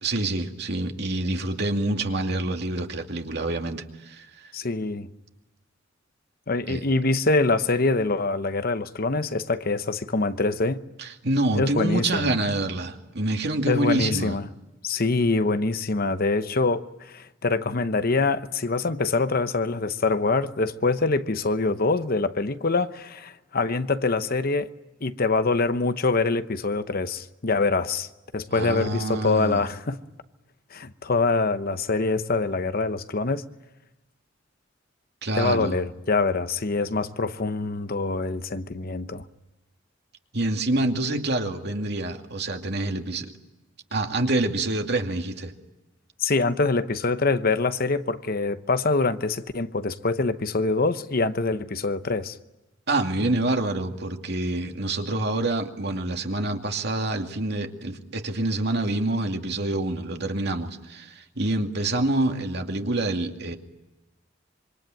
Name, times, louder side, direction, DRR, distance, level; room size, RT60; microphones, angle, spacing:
voice 1, 0.0-4.5 6.7-6.8 11.0-14.4 28.5-29.6 35.2-35.8 40.3-43.3 43.9-45.5 52.9-63.6, right 2 dB, 60° right, 2.4 m, -27 dB
voice 2, 4.5-5.1 6.5-10.8 11.5-12.3 13.7-14.5 14.8-24.7 25.0-28.1 28.3-30.0 30.7-33.4 35.3-39.2 46.2-52.4, left 3 dB, 50° left, 0.9 m, -25 dB
26.5 x 24.5 x 9.1 m
head